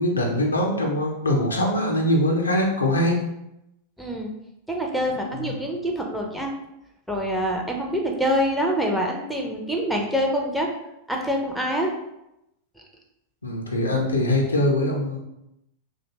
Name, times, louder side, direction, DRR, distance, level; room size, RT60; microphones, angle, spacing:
voice 1, 0.0-3.2 5.4-5.5 13.4-15.2, left 1 dB, 75° left, 0 dB, 0.5 m, -22 dB
voice 2, 4.0-4.3 4.7-6.5 7.1-10.7 11.1-11.9, equal, ahead, 0 dB, 0.4 m, -25 dB
2.5 x 2.1 x 2.8 m, 0.86 s
figure-of-eight pair, 90°, 0 cm